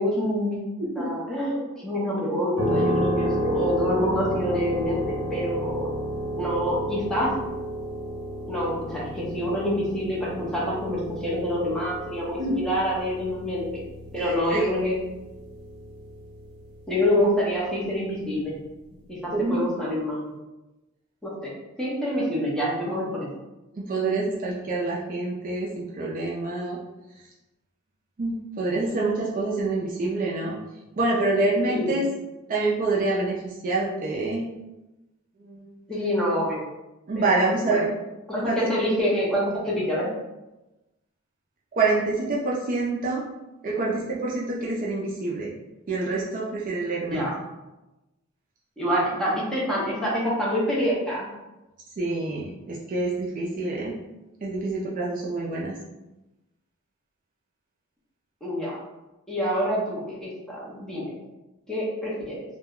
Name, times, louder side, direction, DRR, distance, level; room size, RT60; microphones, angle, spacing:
voice 1, 0.0-0.7 1.0-5.9 6.4-7.3 8.5-13.6 14.1-15.0 16.9-18.6 19.1-20.3 21.2-21.5 21.8-23.3 31.7-32.0 35.9-36.6 37.2-37.8 38.3-40.1 47.1-47.3 48.8-51.3 58.4-58.8 59.3-61.1 61.7-62.4, equal, 5° left, -7 dB, 0.6 m, -26 dB
voice 2, 0.8-1.1 12.4-12.6 14.2-14.7 19.3-19.7 23.7-26.8 28.2-30.6 31.0-32.0 32.5-34.4 35.4-35.8 37.1-37.9 38.4-38.7 41.7-43.2 43.6-45.5 45.9-47.3 52.0-53.9 54.4-55.8, right 3 dB, 35° right, -5 dB, 0.3 m, -26 dB
sound 1, 2.6-17.2, right 1 dB, 80° right, 0.6 m, -32 dB
2.2 x 2.0 x 3.5 m, 1.0 s
head